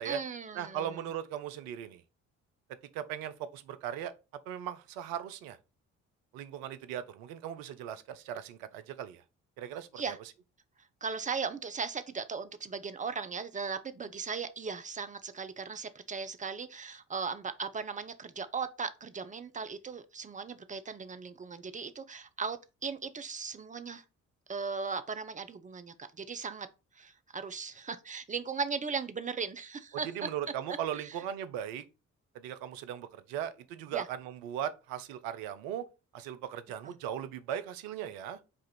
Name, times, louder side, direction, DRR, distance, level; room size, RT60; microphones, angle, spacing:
voice 1, 0.0-1.0 10.0-10.2 11.0-24.0 24.5-26.7 26.9-30.3 31.0-31.2 33.9-34.1 36.8-36.9, right 5 dB, 20° right, 0.5 m, -37 dB
voice 2, 0.5-2.0 2.9-4.1 4.5-5.6 6.3-9.2 9.6-10.1 30.0-31.8 32.3-35.8 36.1-38.4, right 10 dB, 70° right, 0.6 m, -38 dB
4.9 x 2.4 x 4.3 m
figure-of-eight pair, 40°, 37 cm